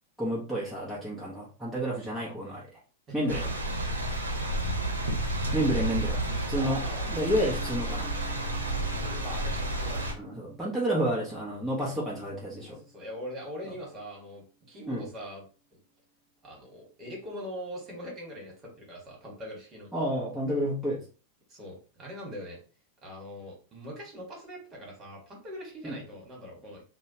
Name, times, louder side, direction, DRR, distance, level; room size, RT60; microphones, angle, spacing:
voice 1, 0.2-2.6 3.1-3.4 5.5-6.2 6.5-6.8 7.1-8.1 10.2-12.8 14.9-15.0 19.9-21.0 25.8-25.9, equal, ahead, -7 dB, 0.9 m, -30 dB
sound 1, 3.3-10.1, right 1 dB, 85° right, 0.7 m, -31 dB
voice 2, 6.5-7.1 8.9-10.1 12.5-15.4 16.4-19.9 21.5-22.6 23.0-26.8, equal, 30° right, 0 dB, 1.5 m, -42 dB
sound 2, 7.1-14.9, right 2 dB, 25° left, 1.3 m, -52 dB
2.7 x 2.2 x 2.8 m, 0.37 s
hypercardioid pair, 95°, 0 cm